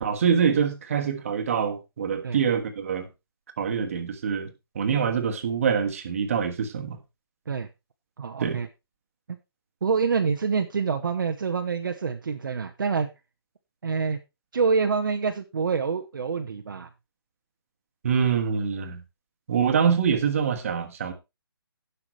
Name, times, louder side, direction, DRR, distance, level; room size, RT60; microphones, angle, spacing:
voice 1, 0.0-3.1 3.6-7.0 8.4-8.6 18.0-19.0 19.5-21.1, right 7 dB, 35° right, 1.5 m, -25 dB
voice 2, 8.2-8.7 9.8-13.1 13.8-14.2 14.5-16.9, right 5 dB, 55° right, 1.0 m, -26 dB
16.5 x 5.9 x 3.1 m
hypercardioid pair, 170°, 13 cm